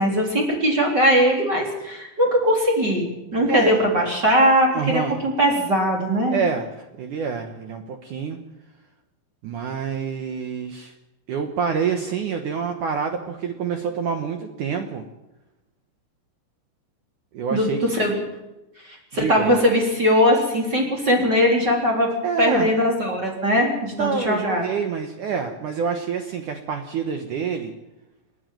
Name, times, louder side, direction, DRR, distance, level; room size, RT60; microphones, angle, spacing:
voice 1, 0.0-6.4 17.5-18.2 18.8-22.1 22.4-24.7, equal, 25° right, 0 dB, 3.8 m, -20 dB
voice 2, 3.5-3.8 4.7-5.2 6.3-8.4 9.4-10.9 11.3-15.1 17.3-17.8 19.1-19.5 22.2-22.7 24.0-27.7, right 6 dB, 70° right, 6 dB, 1.9 m, -27 dB
29.0 x 10.5 x 9.1 m, 0.98 s
omnidirectional pair, 5.2 m